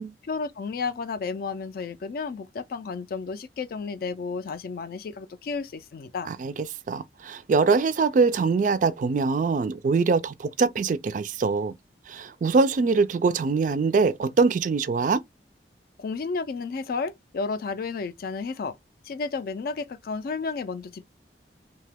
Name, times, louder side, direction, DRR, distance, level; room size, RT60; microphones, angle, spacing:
voice 1, 0.2-6.3 16.0-18.8 19.0-21.1, left 4 dB, 55° left, 0.3 m, -32 dB
voice 2, 6.9-11.7 12.1-15.2, right 4 dB, 45° right, 0.3 m, -23 dB
2.8 x 2.2 x 3.3 m
head